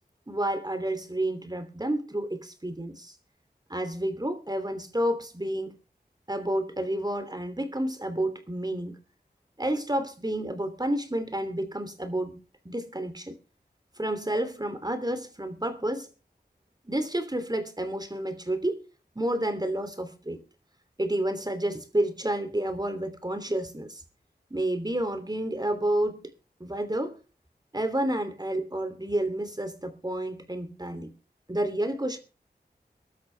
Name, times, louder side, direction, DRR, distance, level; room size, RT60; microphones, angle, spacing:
voice 1, 0.3-3.1 3.7-5.8 6.3-9.0 9.6-12.4 12.6-13.3 14.0-16.1 16.8-18.8 19.1-20.4 21.0-24.0 24.5-26.3 26.6-27.2 27.7-31.1 31.5-32.2, right 1 dB, 25° right, 2.9 m, -30 dB
22.0 x 13.0 x 3.4 m
wide cardioid pair, 50°, 17 cm